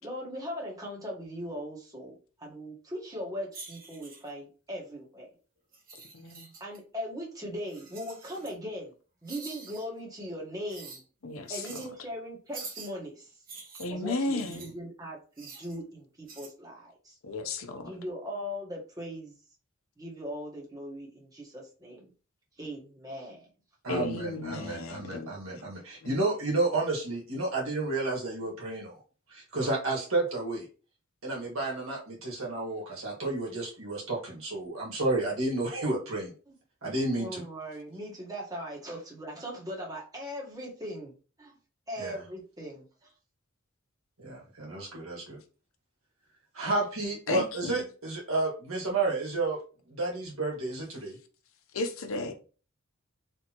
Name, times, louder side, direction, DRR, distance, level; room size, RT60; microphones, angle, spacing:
voice 1, 0.0-5.3 6.6-8.9 9.2-11.0 11.5-13.3 13.9-17.2 17.8-19.4 20.0-22.1 22.6-23.5 36.5-36.6 37.2-41.1 41.4-41.6 41.9-43.1, equal, 20° right, 1.3 m, -39 dB
sound 1, 3.5-4.3 5.7-6.8 7.7-8.6 9.3-9.9 10.7-11.0 11.5-11.9 12.5-12.9 13.5-14.7 15.4-15.8 16.3-16.5, right 4 dB, 45° right, 1.3 m, -46 dB
voice 2, 6.1-6.5 11.2-11.8 13.8-14.7 17.2-17.9 23.9-25.3 47.3-47.8 51.7-52.3, left 3 dB, 85° left, 0.7 m, -34 dB
voice 3, 23.8-29.0 29.3-30.6 31.2-36.3 36.8-37.4 42.0-42.2 44.2-45.4 46.5-49.6 49.9-51.2, right 2 dB, 80° right, 1.7 m, -31 dB
4.3 x 3.4 x 2.9 m
head